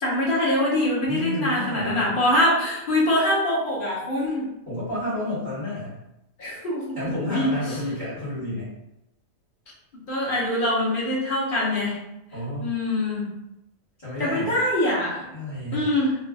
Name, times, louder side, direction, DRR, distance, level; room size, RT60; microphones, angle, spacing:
voice 1, 0.0-4.5 6.4-7.5 10.1-12.0 12.6-13.3 14.2-15.3 15.7-16.2, left 1 dB, 45° left, -6 dB, 1.0 m, -24 dB
voice 2, 1.0-2.1 4.7-5.9 6.9-8.7 12.3-12.7 14.0-14.5 15.3-15.9, left 1 dB, 30° left, -10 dB, 1.4 m, -30 dB
3.3 x 2.4 x 2.3 m, 0.88 s
omnidirectional pair, 1.3 m